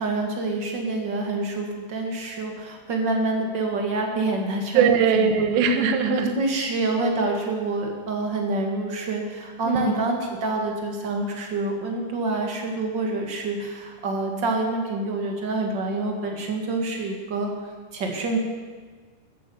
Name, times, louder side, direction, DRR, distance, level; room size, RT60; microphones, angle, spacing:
voice 1, 0.0-5.3 6.1-17.5 17.9-18.4, right 2 dB, 50° right, 2 dB, 1.4 m, -27 dB
voice 2, 4.7-6.3 9.7-9.9, right 6 dB, 90° right, 7 dB, 3.3 m, -20 dB
13.5 x 11.0 x 7.0 m, 1.5 s
omnidirectional pair, 4.8 m